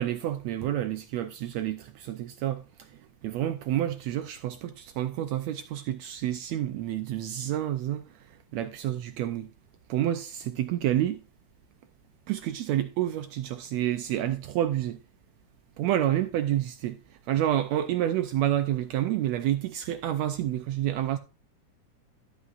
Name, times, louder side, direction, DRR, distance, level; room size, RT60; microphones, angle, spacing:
voice 1, 0.0-9.5 9.9-11.2 12.3-15.0 15.8-21.2, right 12 dB, 80° right, 1.6 m, -29 dB
12.5 x 8.2 x 2.4 m
omnidirectional pair, 3.7 m